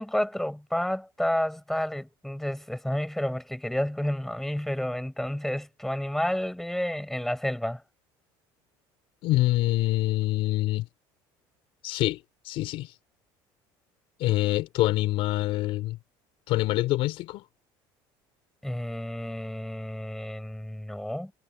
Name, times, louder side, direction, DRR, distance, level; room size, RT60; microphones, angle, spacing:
voice 1, 0.0-7.8 18.6-21.3, left 1 dB, 5° left, 6.4 m, -30 dB
voice 2, 9.2-10.9 11.8-12.9 14.2-16.0 16.5-17.4, left 17 dB, 65° left, 4.7 m, -26 dB
cardioid pair, 115°, 10 cm